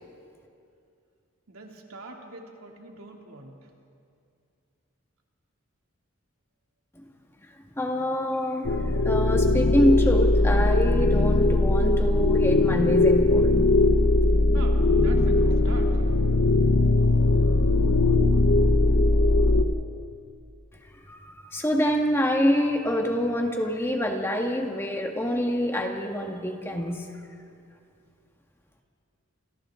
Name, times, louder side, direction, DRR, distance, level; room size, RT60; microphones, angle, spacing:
voice 1, 1.5-3.7 14.5-16.0, right 2 dB, 75° right, 0 dB, 2.9 m, -44 dB
voice 2, 7.8-13.5 21.1-27.1, equal, 10° left, 2 dB, 1.7 m, -26 dB
sound 1, 8.6-19.6, left 2 dB, 75° left, 1.0 m, -20 dB
29.0 x 27.5 x 3.8 m, 2.4 s
head